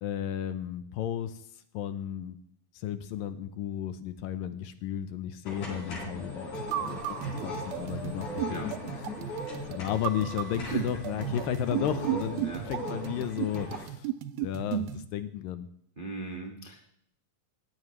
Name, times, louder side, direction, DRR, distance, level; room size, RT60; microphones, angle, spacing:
voice 1, 0.0-1.4 1.7-2.4 2.7-7.0 7.4-8.9 9.3-9.4 9.7-14.1 14.4-15.7, left 10 dB, 75° left, 11 dB, 2.4 m, -34 dB
sound 1, 5.5-13.8, left 1 dB, 55° left, 5.2 m, -39 dB
sound 2, 6.5-15.0, right 12 dB, 85° right, 2.5 m, -35 dB
voice 2, 16.0-16.8, right 2 dB, 45° right, 2 dB, 0.6 m, -38 dB
18.5 x 14.5 x 3.2 m, 0.70 s
omnidirectional pair, 4.3 m